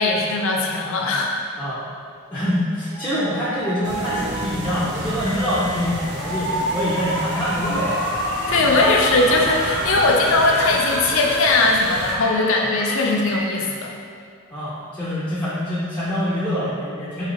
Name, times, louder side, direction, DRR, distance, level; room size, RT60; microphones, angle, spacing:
voice 1, 0.0-1.3 8.5-13.9, left 2 dB, 65° left, 0 dB, 0.5 m, -19 dB
voice 2, 1.6-1.9 2.3-8.0 14.5-17.2, equal, 10° left, -11 dB, 0.4 m, -25 dB
sound 1, 2.9-6.8, right 3 dB, 30° right, 0.8 m, -35 dB
sound 2, 3.8-12.2, right 1 dB, 55° right, 0.5 m, -34 dB
sound 3, 4.9-13.8, equal, 75° right, 0.8 m, -28 dB
4.0 x 2.8 x 2.8 m, 2.2 s
head